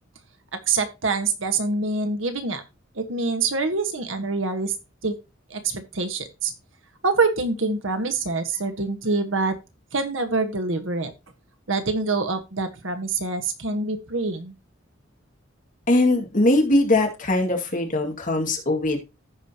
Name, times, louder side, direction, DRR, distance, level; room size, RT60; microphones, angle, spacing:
voice 1, 0.7-2.6 2.9-4.7 5.0-5.2 5.5-6.5 7.0-9.5 9.9-11.1 11.7-14.5, right 3 dB, 80° right, 8 dB, 1.4 m, -25 dB
voice 2, 15.9-19.0, left 2 dB, 45° left, 2 dB, 2.1 m, -21 dB
15.0 x 5.1 x 2.9 m, 0.25 s
head